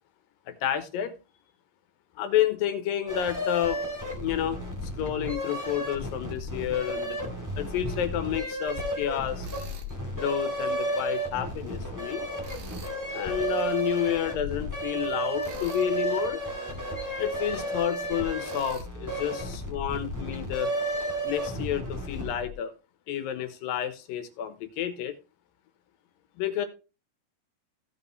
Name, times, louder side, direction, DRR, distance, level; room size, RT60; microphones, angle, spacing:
voice 1, 0.5-1.1 2.2-3.8 4.2-4.6 5.0-7.2 7.6-9.5 10.2-12.3 13.1-16.4 17.2-20.7 21.2-22.7 23.1-25.1 26.4-26.7, left 10 dB, 85° left, 2.8 m, -30 dB
sound 1, 3.1-22.5, right 1 dB, 5° right, 1.6 m, -33 dB
Tools, 9.4-9.9 12.4-13.0 15.4-15.9 18.4-18.9, right 6 dB, 55° right, 1.5 m, -46 dB
16.0 x 5.6 x 3.1 m
omnidirectional pair, 3.9 m